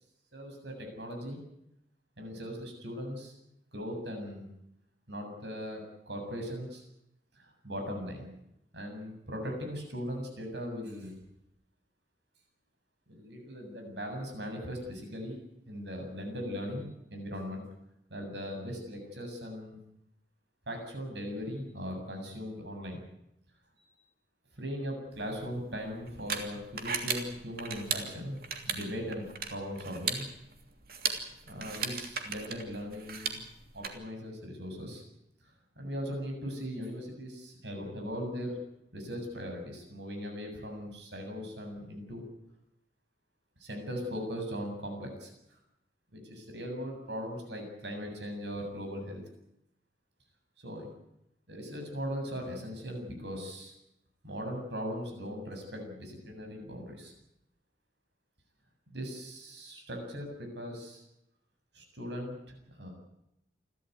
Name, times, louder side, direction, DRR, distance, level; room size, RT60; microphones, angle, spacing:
voice 1, 0.3-1.4 2.2-3.3 3.7-4.5 5.1-6.8 7.4-8.3 8.7-11.1 13.1-15.4 15.7-17.6 18.1-19.8 20.7-23.0 24.5-29.2 29.5-30.2 31.5-33.4 33.7-35.0 35.4-38.6 38.9-42.2 43.6-45.3 46.1-49.2 50.6-50.9 51.5-53.7 54.2-57.1 58.9-61.0 61.7-62.9, equal, 70° right, 4 dB, 7.6 m, -39 dB
sound 1, 25.2-33.9, right 6 dB, 55° right, 3.0 m, -37 dB
29.0 x 13.0 x 9.4 m, 0.82 s
head